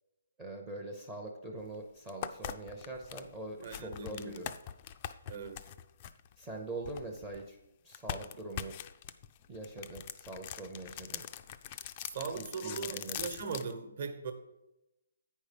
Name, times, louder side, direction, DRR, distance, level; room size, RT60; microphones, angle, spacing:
voice 1, 0.4-4.5 6.4-7.6 7.8-8.7 9.5-11.2 12.3-13.2, right 2 dB, 10° right, 2 dB, 0.6 m, -43 dB
sound 1, 1.6-1.7 2.1-7.5 7.9-13.7, left 10 dB, 25° left, 0.3 m, -42 dB
voice 2, 3.6-4.4 5.2-5.7 12.0-14.3, right 5 dB, 45° right, 8 dB, 1.1 m, -40 dB
8.9 x 5.4 x 5.0 m, 0.91 s
hypercardioid pair, 170°, 0 cm